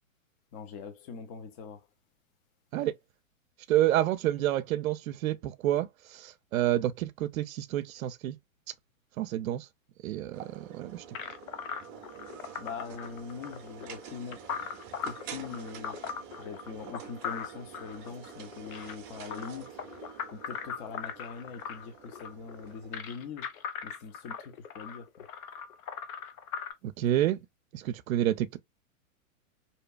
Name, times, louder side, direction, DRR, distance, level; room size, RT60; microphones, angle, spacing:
voice 1, 0.5-1.9 12.6-14.5 15.0-16.0 16.4-19.8 20.3-23.5 23.8-25.3, left 5 dB, 25° left, 0.4 m, -42 dB
voice 2, 3.7-8.4 9.2-9.7 10.0-11.0 26.8-27.4 27.7-28.6, right 13 dB, 75° right, 0.5 m, -29 dB
sound 1, 10.3-23.0, right 8 dB, 30° right, 0.6 m, -48 dB
sound 2, 11.1-26.7, left 7 dB, 80° left, 0.7 m, -40 dB
2.8 x 2.2 x 2.2 m
hypercardioid pair, 125°, 41 cm